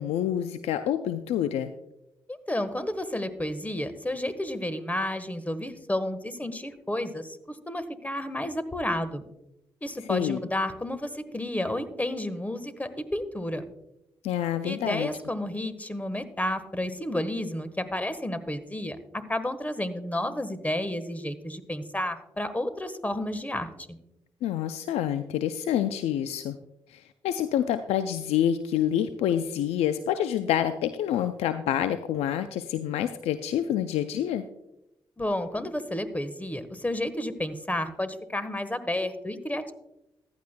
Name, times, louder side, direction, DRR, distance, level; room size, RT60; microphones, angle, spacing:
voice 1, 0.0-1.7 10.1-10.4 14.2-15.1 24.4-26.6 26.9-34.4, left 10 dB, 85° left, 11 dB, 0.4 m, -27 dB
voice 2, 2.3-9.2 9.8-13.6 14.6-19.0 19.3-24.0 35.2-39.7, left 1 dB, 15° left, 12 dB, 1.2 m, -31 dB
14.5 x 11.5 x 2.2 m, 0.86 s
supercardioid pair, 45°, 10 cm